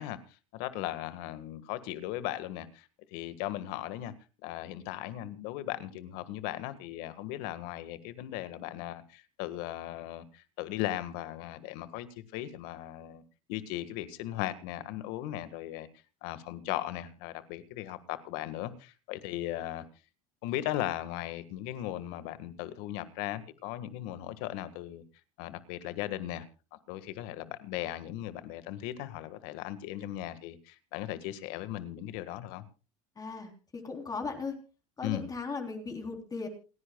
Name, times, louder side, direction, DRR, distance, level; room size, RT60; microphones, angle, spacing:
voice 1, 0.0-4.1 4.4-13.2 13.5-15.9 16.2-19.8 20.4-25.0 25.4-32.6 35.0-35.3, left 14 dB, 65° left, 13 dB, 1.7 m, -37 dB
voice 2, 33.2-34.6 35.0-36.5, left 4 dB, 20° left, 4 dB, 3.6 m, -37 dB
28.5 x 10.5 x 2.3 m, 0.32 s
supercardioid pair, 110°, 18 cm